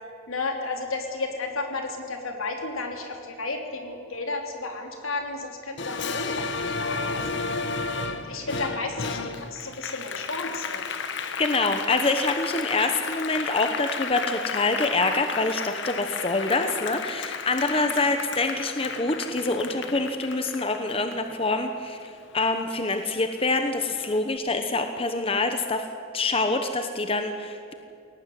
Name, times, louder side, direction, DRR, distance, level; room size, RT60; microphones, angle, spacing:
voice 1, 0.3-10.8 17.9-18.0, left 3 dB, 80° left, 3 dB, 3.4 m, -33 dB
Applause, 5.8-22.6 23.0-24.2, left 5 dB, 55° left, 1.3 m, -33 dB
voice 2, 11.4-25.9 26.1-27.7, left 3 dB, 25° left, 7 dB, 1.0 m, -26 dB
21.0 x 18.0 x 9.4 m, 2.5 s
head